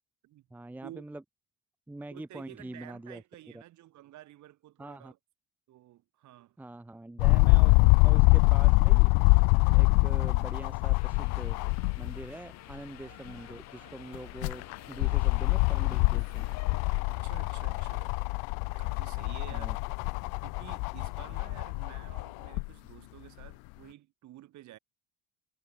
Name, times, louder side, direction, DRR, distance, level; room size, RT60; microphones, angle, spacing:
voice 1, 0.5-1.2 1.9-3.2 3.5-3.6 4.8-5.1 6.6-7.7 8.0-9.1 9.7-11.6 12.0-16.5 19.5-19.8, right 2 dB, 5° right, 0.7 m, -44 dB
voice 2, 2.1-5.2 5.7-6.6 17.0-18.2 18.7-19.9 20.4-24.8, right 14 dB, 50° right, 4.6 m, -51 dB
sound 1, 7.2-12.2 12.7-12.8 14.1-22.7 23.4-23.5, left 33 dB, 85° left, 0.6 m, -24 dB
sound 2, 10.0-18.4, right 28 dB, 85° right, 4.7 m, -63 dB
Subway metro underground, 10.9-17.0, left 16 dB, 45° left, 1.0 m, -50 dB
cardioid pair, 160°, 37 cm